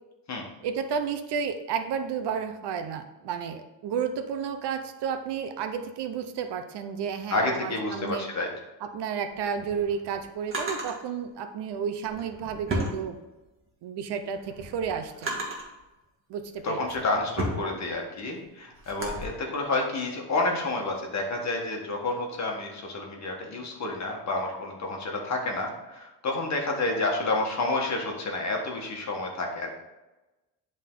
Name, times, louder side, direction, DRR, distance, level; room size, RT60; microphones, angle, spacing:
voice 1, 0.6-8.2 8.8-13.2 13.8-15.4 16.3-17.0, right 7 dB, 60° right, 7 dB, 0.8 m, -32 dB
voice 2, 7.3-8.5 16.6-29.8, left 2 dB, 35° left, 1 dB, 1.5 m, -29 dB
Drawer open or close, 9.3-11.0 12.0-13.6 14.1-15.8 16.4-19.2, right 1 dB, 25° right, 1.8 m, -35 dB
10.5 x 3.8 x 3.8 m, 1.0 s
cardioid pair, 130°, 46 cm